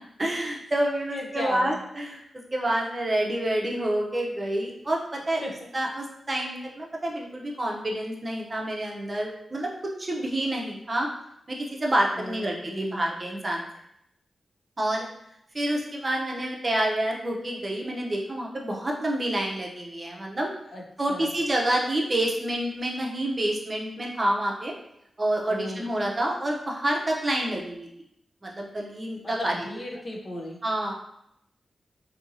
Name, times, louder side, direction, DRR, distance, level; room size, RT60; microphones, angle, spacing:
voice 1, 0.2-2.2 2.5-5.4 5.7-9.7 10.0-11.1 11.5-13.7 14.8-15.1 15.5-20.5 21.0-24.7 25.2-27.9 28.4-29.5 30.6-30.9, right 1 dB, 40° right, -1 dB, 0.6 m, -28 dB
voice 2, 1.1-1.8 5.4-5.5 12.1-13.0 20.7-20.8 21.1-21.3 25.5-25.9 29.2-30.6, left 1 dB, 50° left, 0 dB, 0.6 m, -35 dB
2.7 x 2.7 x 2.6 m, 0.78 s
cardioid pair, 55°, 0 cm